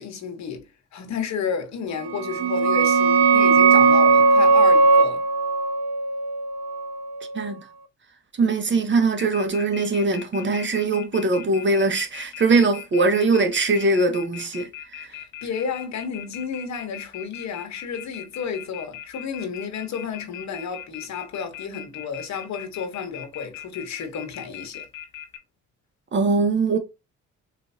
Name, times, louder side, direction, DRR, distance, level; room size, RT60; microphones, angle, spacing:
voice 1, 0.0-5.2 15.1-24.9, left 6 dB, 65° left, 1.3 m, -32 dB
sound 1, 2.1-7.5, right 4 dB, 60° right, 0.7 m, -18 dB
voice 2, 8.4-15.1 26.1-26.8, right 3 dB, 40° right, 1.0 m, -21 dB
sound 2, 9.2-25.4, left 10 dB, 85° left, 1.3 m, -39 dB
4.2 x 3.1 x 2.7 m
cardioid pair, 90°, 30 cm